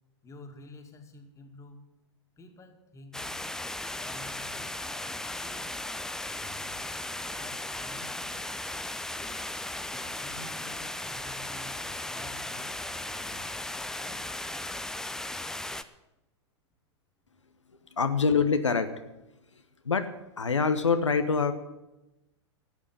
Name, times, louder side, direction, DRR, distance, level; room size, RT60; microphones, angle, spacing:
voice 1, 0.2-1.9 2.4-3.3 3.9-6.9 7.3-8.4 9.2-9.5 9.8-14.2, left 2 dB, 20° left, 5 dB, 2.3 m, -50 dB
sound 1, 3.1-15.8, left 1 dB, 5° left, 0.6 m, -36 dB
voice 2, 17.9-18.9 19.8-20.1 20.4-21.5, left 5 dB, 85° left, 8 dB, 1.1 m, -25 dB
13.0 x 8.5 x 9.9 m, 0.99 s
figure-of-eight pair, 100°, 15 cm